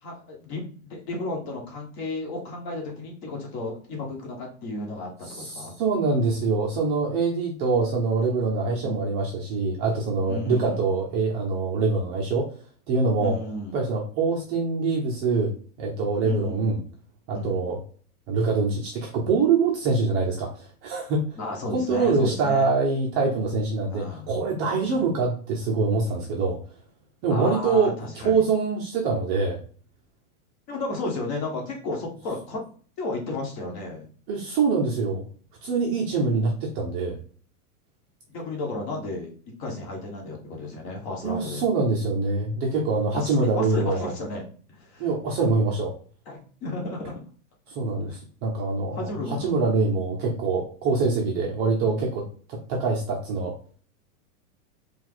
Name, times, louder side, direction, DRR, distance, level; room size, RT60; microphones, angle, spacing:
voice 1, 0.0-5.7 8.8-9.1 10.3-10.8 13.2-13.8 16.2-16.6 17.3-17.7 21.4-22.7 23.9-24.3 24.8-25.0 27.3-28.4 30.7-32.6 33.0-34.0 38.3-39.3 39.6-41.6 43.1-44.4 44.7-45.1 46.3-47.2 48.9-49.6, left 2 dB, 45° left, 0 dB, 1.8 m, -33 dB
voice 2, 5.3-12.5 12.9-13.4 13.7-15.5 15.8-16.8 17.3-17.8 18.3-21.4 21.7-26.6 27.2-29.6 34.3-35.2 35.6-37.2 41.2-44.1 45.0-45.9 47.7-49.0 49.3-53.5, right 4 dB, 25° right, -1 dB, 0.6 m, -24 dB
4.6 x 2.4 x 3.9 m, 0.43 s
supercardioid pair, 160°, 45 cm